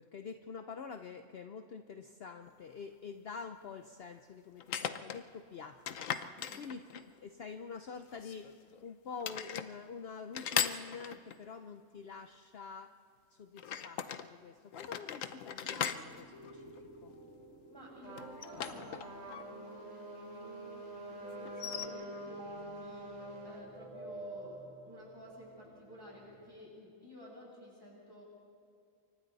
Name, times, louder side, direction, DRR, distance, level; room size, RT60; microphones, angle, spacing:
voice 1, 0.0-12.9 13.3-16.7 17.0-17.1, left 5 dB, 55° left, 7 dB, 0.9 m, -47 dB
sound 1, 2.5-2.6 4.6-5.2 5.9-7.2 8.1-8.8 9.2-9.7 10.3-11.4 13.6-14.3 14.7-17.1 18.2-19.4 19.7-19.8 21.4-21.9, left 8 dB, 80° left, 1.2 m, -38 dB
voice 2, 6.3-6.7 17.7-28.2, equal, 15° right, -5 dB, 7.9 m, -53 dB
sound 2, 15.6-26.5, right 1 dB, 60° right, 2.4 m, -52 dB
Trumpet, 18.0-23.7, right 1 dB, 80° right, 3.2 m, -47 dB
28.5 x 24.0 x 4.1 m, 2.4 s
omnidirectional pair, 1.4 m